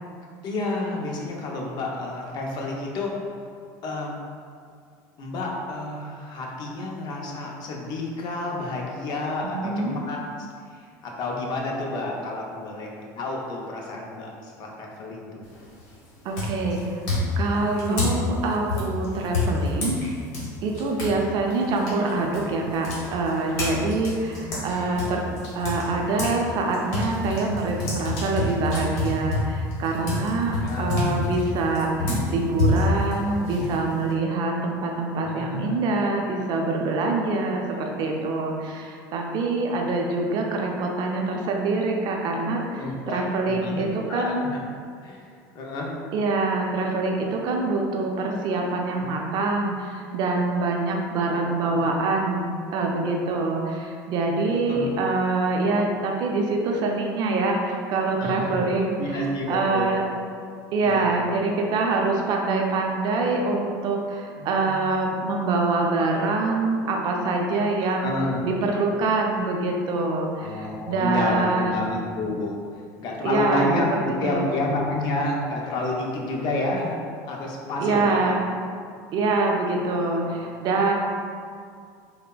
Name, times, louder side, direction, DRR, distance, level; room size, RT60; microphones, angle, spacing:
voice 1, 0.4-3.1 3.8-4.2 5.2-10.2 11.0-15.5 17.7-18.2 24.4-25.2 27.7-27.9 30.6-31.0 35.2-35.8 42.8-44.7 45.0-45.2 45.5-45.9 48.9-49.1 51.5-51.8 54.5-55.0 58.2-58.5 59.0-60.0 60.8-61.3 64.4-64.9 68.0-68.4 70.4-72.6 73.0-77.0 77.2-78.3 80.1-80.3, left 2 dB, 50° left, -1 dB, 0.5 m, -30 dB
voice 2, 9.4-10.0 16.2-17.0 17.4-20.0 20.6-25.2 25.5-44.5 46.1-60.0 60.7-68.1 68.4-71.8 73.2-74.5 77.8-78.4 79.1-80.9, right 3 dB, 55° right, 1 dB, 0.4 m, -25 dB
sound 1, 15.4-15.8 16.3-21.2 21.5-26.4 26.7-34.1, left 2 dB, 75° left, 1.0 m, -28 dB
3.2 x 2.0 x 2.2 m, 2.2 s
supercardioid pair, 105°, 9 cm